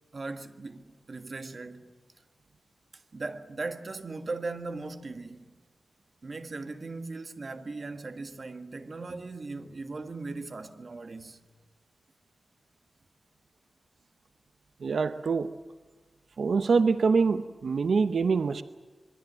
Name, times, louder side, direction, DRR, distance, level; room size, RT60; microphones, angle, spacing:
voice 1, 0.0-1.9 2.9-5.5 6.2-11.4, right 3 dB, 50° right, 1.7 m, -38 dB
voice 2, 14.8-15.5 16.4-18.6, right 5 dB, 85° right, 0.7 m, -25 dB
26.0 x 22.5 x 7.6 m
wide cardioid pair, 110°, 0 cm